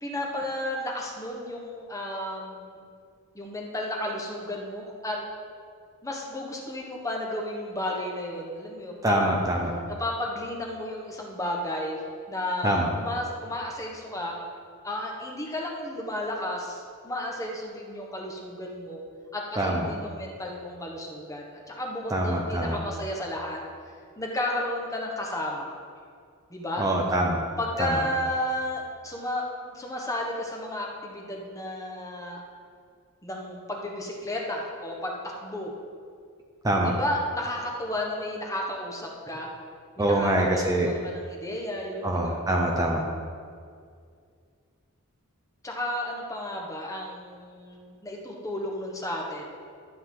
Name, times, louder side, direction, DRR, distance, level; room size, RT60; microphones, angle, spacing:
voice 1, 0.0-2.8 3.3-5.2 6.0-9.3 9.9-12.0 12.3-14.4 14.8-19.0 19.3-23.6 24.2-25.7 26.5-26.8 27.6-32.4 33.2-35.7 36.8-39.5 40.0-42.4 45.6-49.5, left 1 dB, 15° left, -1 dB, 1.2 m, -33 dB
voice 2, 9.0-9.7 12.6-12.9 19.6-19.9 22.1-22.8 26.8-27.4 27.8-28.0 36.6-36.9 40.0-40.9 42.0-43.0, right 1 dB, 15° right, -1 dB, 0.7 m, -24 dB
12.5 x 7.9 x 3.8 m, 2.2 s
head